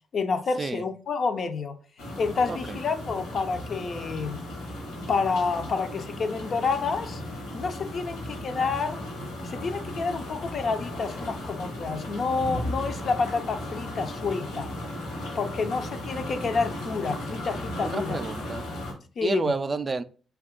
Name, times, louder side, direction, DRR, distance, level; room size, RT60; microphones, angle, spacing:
voice 1, 0.1-1.8 2.2-4.4 5.1-7.2 7.5-9.1 9.4-14.7 15.3-18.2 19.2-19.5, left 4 dB, 55° left, 0.4 m, -29 dB
sound 1, 2.0-18.9, left 1 dB, 80° left, 1.0 m, -36 dB
voice 2, 2.5-2.8 17.8-18.7 19.2-20.0, right 3 dB, 40° right, 0.3 m, -30 dB
2.7 x 2.3 x 3.6 m
hypercardioid pair, 45°, 0 cm